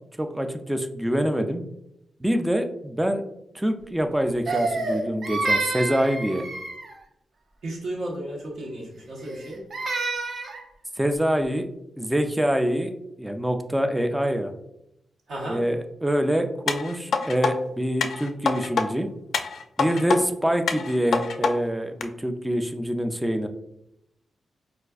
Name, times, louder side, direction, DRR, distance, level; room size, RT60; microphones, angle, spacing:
voice 1, 0.2-1.6 2.2-3.2 3.5-6.5 11.0-11.7 12.0-12.9 13.2-14.5 15.5-19.1 19.8-23.5, equal, 5° right, 6 dB, 0.3 m, -25 dB
Crying sobbing, 4.5-7.0 9.2-10.6, right 3 dB, 60° right, 0.6 m, -28 dB
voice 2, 7.6-9.6 15.3-15.6, right 1 dB, 80° right, -3 dB, 1.0 m, -33 dB
sound 1, 16.7-17.5 18.0-18.9 19.3-20.2 20.7-21.5 22.0-22.1, left 5 dB, 80° left, 0.3 m, -25 dB
4.3 x 2.4 x 2.3 m, 0.83 s
cardioid pair, 100°, 0 cm